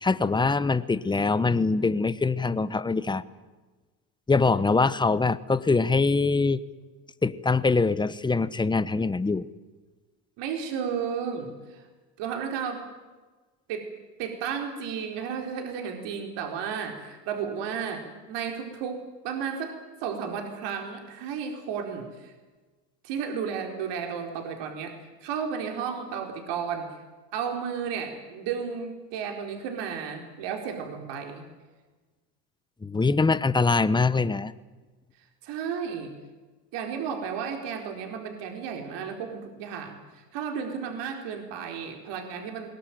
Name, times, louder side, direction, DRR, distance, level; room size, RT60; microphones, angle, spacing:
voice 1, 0.0-3.2 4.3-6.6 7.2-9.5 32.8-34.5, left 4 dB, 10° left, 15 dB, 0.9 m, -23 dB
voice 2, 10.4-11.9 12.2-12.9 13.7-13.9 14.2-22.3 23.0-24.9 25.2-27.0 27.3-31.4 35.2-36.1 36.7-42.7, right 7 dB, 60° right, 4 dB, 4.5 m, -33 dB
22.5 x 18.5 x 9.3 m, 1.3 s
supercardioid pair, 110°, 48 cm